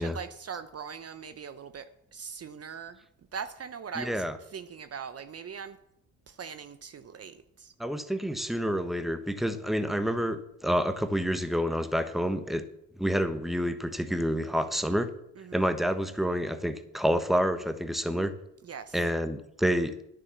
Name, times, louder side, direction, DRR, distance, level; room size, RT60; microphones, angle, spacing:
voice 1, 0.0-3.1 3.3-5.8 6.3-7.7 15.4-15.9 18.6-19.0, right 6 dB, 40° right, 11 dB, 0.8 m, -41 dB
voice 2, 4.0-4.3 7.8-12.6 13.0-15.1 15.5-18.3 18.9-19.9, equal, ahead, 10 dB, 1.2 m, -28 dB
10.0 x 8.8 x 7.2 m, 0.79 s
supercardioid pair, 70°, 37 cm